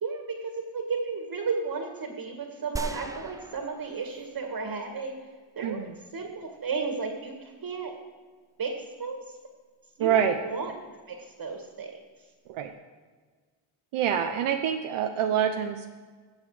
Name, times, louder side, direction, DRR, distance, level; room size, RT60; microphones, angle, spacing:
voice 1, 0.0-5.2 5.6-7.9 8.6-9.2 10.0-10.7 11.1-11.9, right 4 dB, 45° right, 3 dB, 2.0 m, -33 dB
sound 1, 2.8-4.5 5.0-5.1, right 2 dB, 5° right, 0.4 m, -38 dB
voice 2, 5.6-5.9 10.0-10.4 12.5-12.7 13.9-15.9, right 9 dB, 80° right, 5 dB, 0.9 m, -26 dB
15.5 x 7.3 x 5.0 m, 1.5 s
cardioid pair, 90°, 50 cm